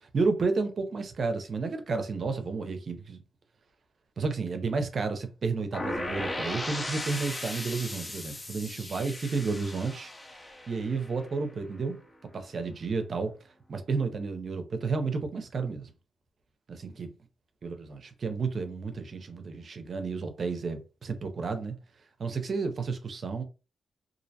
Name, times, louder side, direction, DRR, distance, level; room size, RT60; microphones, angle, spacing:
voice 1, 0.0-3.2 4.2-10.1 10.7-12.0 12.3-13.3 13.7-15.9 16.7-17.1 17.6-21.7 22.2-23.4, right 4 dB, 60° right, 0.5 m, -31 dB
sound 1, 5.7-11.6, left 1 dB, 25° left, 0.6 m, -37 dB
2.5 x 2.0 x 2.7 m
cardioid pair, 60°, 0 cm